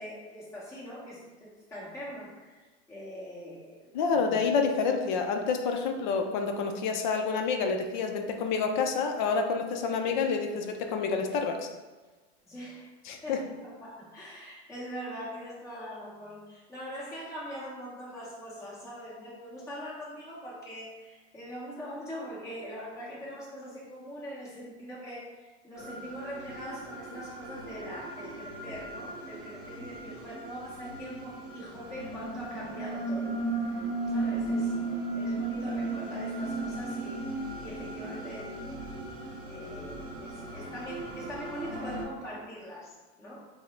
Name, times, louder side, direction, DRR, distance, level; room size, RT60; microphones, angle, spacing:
voice 1, 0.0-2.6 2.9-4.4 12.4-12.9 13.2-34.7 35.1-37.2 37.6-39.0 39.5-43.5, equal, 10° left, -7 dB, 0.9 m, -42 dB
voice 2, 3.9-11.7 13.1-13.4, left 5 dB, 45° left, 4 dB, 0.5 m, -28 dB
sound 1, 25.8-42.1, right 2 dB, 45° right, 0.9 m, -36 dB
3.5 x 2.1 x 4.3 m, 1.3 s
supercardioid pair, 155°, 33 cm